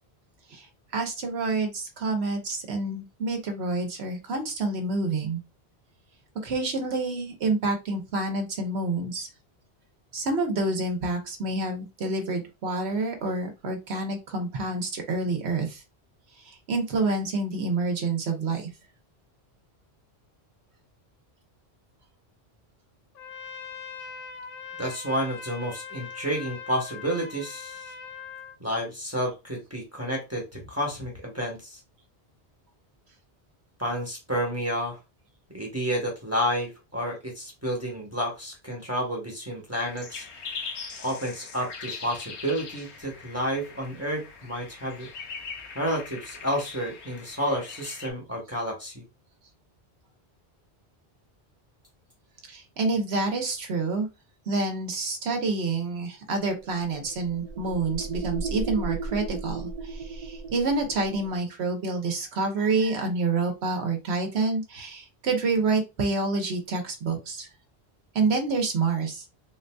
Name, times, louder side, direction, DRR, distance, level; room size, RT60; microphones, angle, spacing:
voice 1, 0.9-5.4 6.4-9.3 10.1-15.8 16.4-18.7 52.5-54.1 54.5-67.5 68.1-69.2, right 3 dB, 75° right, 4 dB, 1.1 m, -28 dB
Trumpet, 23.1-28.6, left 6 dB, 60° left, 0.7 m, -41 dB
voice 2, 24.8-27.9 28.6-31.8 33.8-35.0 35.5-40.2 41.0-45.1 45.7-49.0, equal, 15° right, -1 dB, 1.0 m, -30 dB
sound 1, 39.8-48.1, left 5 dB, 85° left, 1.0 m, -41 dB
sound 2, 56.4-61.4, right 3 dB, 55° right, 0.4 m, -35 dB
3.9 x 2.6 x 2.2 m, 0.25 s
omnidirectional pair, 1.1 m